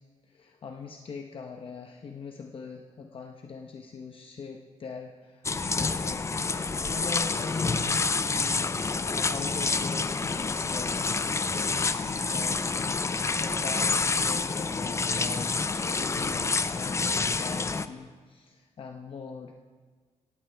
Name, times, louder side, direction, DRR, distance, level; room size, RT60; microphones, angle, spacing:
voice 1, 0.2-6.6 6.9-15.6 15.8-19.5, left 5 dB, 45° left, 3 dB, 0.8 m, -41 dB
sound 1, 5.4-17.9, left 4 dB, 20° left, 0.4 m, -28 dB
17.0 x 16.5 x 3.4 m, 1.5 s
wide cardioid pair, 145°, 13 cm